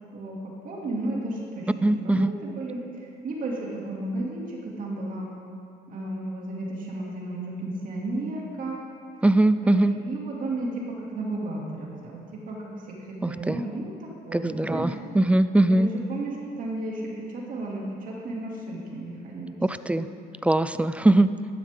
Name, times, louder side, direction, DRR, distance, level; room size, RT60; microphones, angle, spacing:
voice 1, 0.1-2.8 3.2-5.3 5.9-8.8 9.6-12.2 12.5-12.6 13.1-13.9 14.2-14.9 15.7-19.5 19.9-20.0, right 2 dB, 55° right, -3 dB, 2.8 m, -33 dB
voice 2, 1.8-2.3 9.2-9.9 13.2-13.6 14.3-15.9 19.6-20.1 20.4-21.3, right 2 dB, 5° right, 13 dB, 0.4 m, -21 dB
14.5 x 12.0 x 3.8 m, 2.3 s
cardioid pair, 110°, 17 cm